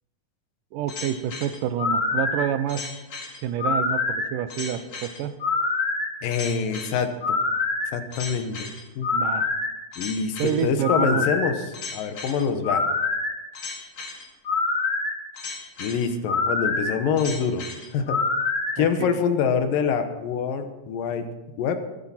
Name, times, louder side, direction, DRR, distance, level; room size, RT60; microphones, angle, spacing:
voice 1, 0.7-2.8 3.4-5.3 9.1-9.5 10.4-11.2 18.8-19.1, right 9 dB, 80° right, 12 dB, 2.2 m, -28 dB
sound 1, 0.9-18.8, left 3 dB, 40° left, 2.4 m, -27 dB
voice 2, 6.2-7.4 7.9-9.1 10.0-12.9 15.8-17.6 17.9-18.2 18.8-21.3 21.6-21.8, left 6 dB, 80° left, 8 dB, 2.8 m, -25 dB
23.0 x 9.6 x 4.3 m, 1.1 s
omnidirectional pair, 4.0 m